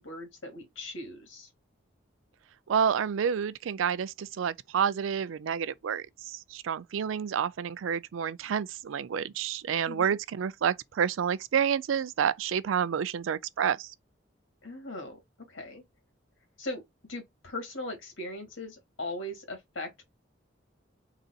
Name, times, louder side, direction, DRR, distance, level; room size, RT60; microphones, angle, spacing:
voice 1, 0.0-1.5 9.9-10.2 14.6-15.2 15.5-15.8 16.6-16.8 17.1-20.0, left 1 dB, 85° left, 2.0 m, -39 dB
voice 2, 2.7-13.9, right 7 dB, 90° right, 0.4 m, -29 dB
4.0 x 3.9 x 2.2 m
head